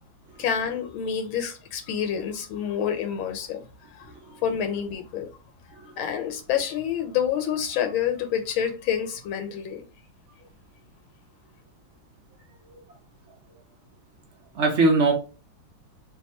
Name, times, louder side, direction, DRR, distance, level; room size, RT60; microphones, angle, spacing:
voice 1, 0.4-3.6 3.9-5.3 5.7-9.8, left 8 dB, 85° left, 1.5 m, -28 dB
voice 2, 14.5-15.1, right 3 dB, 60° right, 0.7 m, -22 dB
3.4 x 2.9 x 4.1 m
omnidirectional pair, 2.1 m